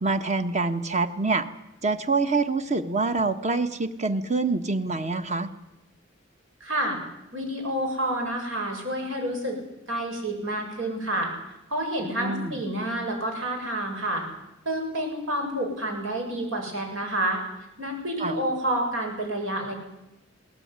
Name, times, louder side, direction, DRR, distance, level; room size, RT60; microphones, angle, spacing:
voice 1, 0.0-1.5 1.8-5.5 12.2-12.6 18.2-18.4, right 3 dB, 35° right, 10 dB, 1.4 m, -26 dB
voice 2, 6.6-7.0 7.3-9.6 9.9-14.2 14.7-17.4 17.8-19.7, right 1 dB, 75° right, 2 dB, 7.4 m, -29 dB
21.0 x 18.5 x 9.7 m, 0.91 s
head